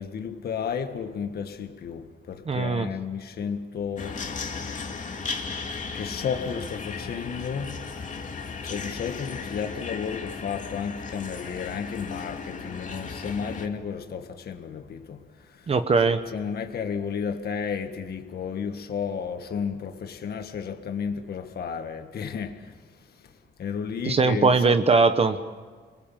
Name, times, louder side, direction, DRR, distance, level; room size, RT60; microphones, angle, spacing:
voice 1, 0.0-4.3 5.9-7.9 8.5-15.7 16.3-24.8, left 6 dB, 55° left, 1.7 m, -33 dB
voice 2, 2.5-2.9 15.7-16.2 24.1-25.4, right 4 dB, 30° right, 1.1 m, -20 dB
sound 1, 4.0-13.7, left 4 dB, 40° left, 2.6 m, -36 dB
30.0 x 22.0 x 7.5 m
wide cardioid pair, 155°, 19 cm